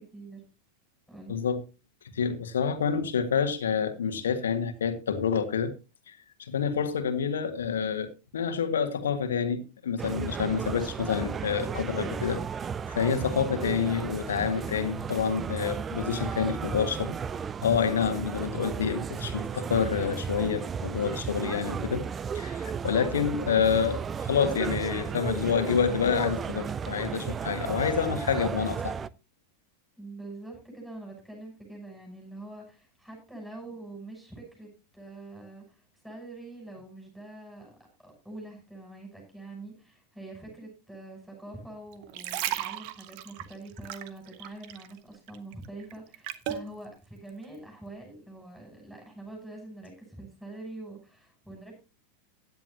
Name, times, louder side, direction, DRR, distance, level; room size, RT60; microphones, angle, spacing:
voice 1, 1.3-1.6 2.1-5.7 6.1-12.4 12.9-17.1 17.6-22.1 22.3-28.9, left 7 dB, 65° left, 1.6 m, -28 dB
sound 1, 10.0-29.1, right 6 dB, 20° right, 0.5 m, -34 dB
voice 2, 30.0-37.7 38.0-51.8, right 2 dB, ahead, 6.5 m, -45 dB
sound 2, 41.9-45.0 45.3-46.7 47.3-47.4, right 12 dB, 45° right, 1.2 m, -35 dB
16.5 x 10.5 x 2.8 m
figure-of-eight pair, 90°, 0 cm